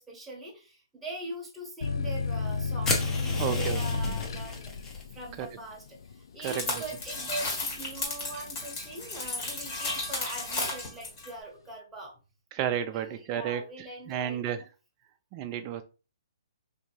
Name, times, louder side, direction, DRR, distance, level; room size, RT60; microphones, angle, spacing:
voice 1, 0.0-12.2 12.9-14.4, right 1 dB, 5° right, 1.0 m, -42 dB
sound 1, 1.8-9.1 9.5-10.2, left 4 dB, 70° left, 0.4 m, -32 dB
sound 2, 2.8-5.0, left 3 dB, 15° left, 0.7 m, -33 dB
voice 2, 3.4-4.0 5.4-5.5 6.4-6.8 12.5-13.6 14.1-14.6 15.3-15.8, right 10 dB, 30° right, 0.4 m, -32 dB
sound 3, 6.4-11.3, left 2 dB, 40° left, 1.7 m, -34 dB
3.5 x 2.7 x 2.9 m
hypercardioid pair, 150°, 2 cm